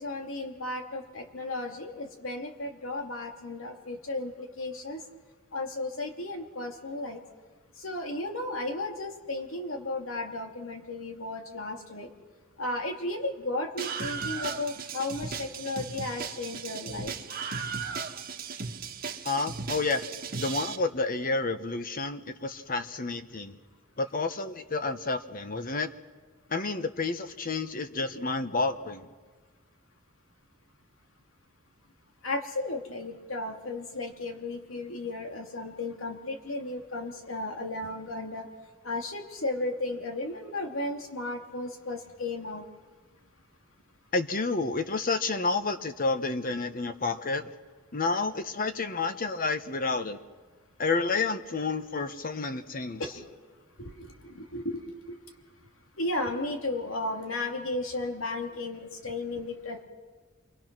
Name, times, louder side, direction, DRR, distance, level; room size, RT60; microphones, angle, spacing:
voice 1, 0.0-5.0 5.5-7.2 7.8-12.1 12.6-17.2 32.2-38.5 38.8-42.7 53.0-53.2 53.8-54.9 56.0-59.8, left 2 dB, 90° left, 2 dB, 2.7 m, -34 dB
Screaming, 13.8-20.8, right 5 dB, 50° right, 1.4 m, -36 dB
voice 2, 19.2-20.0 20.4-23.6 24.0-25.9 26.5-29.1 44.1-47.5 47.9-50.2 50.8-53.0, left 3 dB, 45° left, 9 dB, 1.1 m, -30 dB
28.0 x 23.5 x 6.1 m, 1.4 s
head